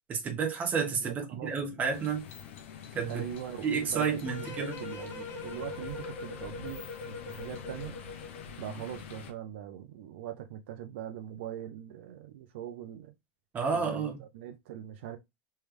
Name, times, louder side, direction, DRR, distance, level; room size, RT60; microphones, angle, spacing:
voice 1, 0.1-2.3 2.9-3.2 3.6-4.8 13.5-14.2, right 6 dB, 25° right, 1.1 m, -30 dB
voice 2, 1.0-1.5 3.1-8.0 8.6-13.1 13.7-15.2, right 11 dB, 75° right, 0.6 m, -41 dB
sound 1, 1.9-9.3, left 7 dB, 80° left, 0.8 m, -46 dB
sound 2, 4.3-8.6, left 4 dB, 35° left, 1.2 m, -42 dB
3.3 x 3.2 x 3.3 m
supercardioid pair, 140°, 6 cm